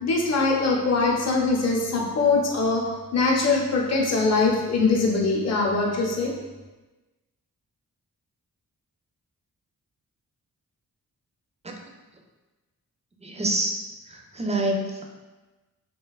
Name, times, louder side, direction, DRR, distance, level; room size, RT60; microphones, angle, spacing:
voice 1, 0.0-2.8 3.1-6.3, left 3 dB, 45° left, -2 dB, 0.6 m, -22 dB
voice 2, 13.2-15.0, right 1 dB, 20° right, 1 dB, 0.4 m, -27 dB
3.2 x 2.2 x 2.3 m, 1.2 s
cardioid pair, 50°, 37 cm